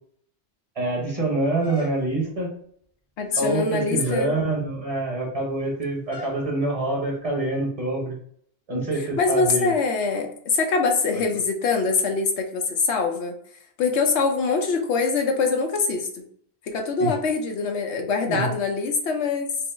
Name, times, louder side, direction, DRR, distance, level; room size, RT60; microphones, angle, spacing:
voice 1, 0.7-2.5 3.4-8.2 8.7-9.7 11.1-11.2 17.0-17.1 18.3-18.5, right 2 dB, 35° right, -2 dB, 1.1 m, -26 dB
sound 1, 1.6-2.4 3.2-3.6 4.0-4.3 6.1-6.4, left 1 dB, 30° left, 0.5 m, -41 dB
voice 2, 3.2-4.3 8.7-8.8 9.2-13.3 13.8-16.2 16.6-19.5, left 4 dB, 85° left, 4 dB, 1.0 m, -24 dB
4.6 x 2.0 x 3.4 m, 0.64 s
omnidirectional pair, 1.1 m